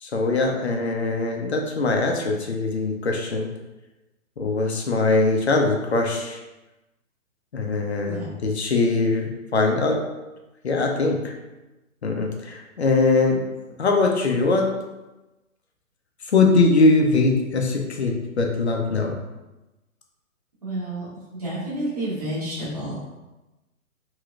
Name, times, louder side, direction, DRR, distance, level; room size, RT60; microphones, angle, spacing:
voice 1, 0.0-3.5 4.4-6.4 7.5-10.0 10.6-11.3 12.0-13.4 13.8-14.7 16.2-19.2, left 3 dB, 50° left, 2 dB, 0.5 m, -21 dB
voice 2, 20.6-21.1 21.4-23.0, right 1 dB, 25° right, -8 dB, 0.8 m, -29 dB
3.1 x 3.0 x 2.4 m, 1.1 s
hypercardioid pair, 180°, 43 cm